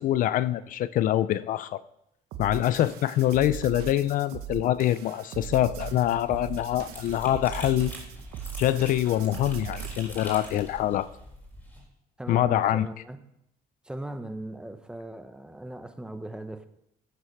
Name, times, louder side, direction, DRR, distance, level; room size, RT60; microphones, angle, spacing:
voice 1, 0.0-1.8 2.4-7.9 8.6-11.1 12.3-12.9, left 13 dB, 60° left, 16 dB, 0.6 m, -25 dB
sound 1, 2.3-10.2, right 11 dB, 90° right, 1.2 m, -39 dB
sound 2, 5.9-11.8, equal, 10° left, 4.3 m, -43 dB
voice 2, 12.2-13.2 13.8-16.7, right 1 dB, 5° right, 9 dB, 0.9 m, -38 dB
15.5 x 8.0 x 6.6 m, 0.78 s
cardioid pair, 165°, 16 cm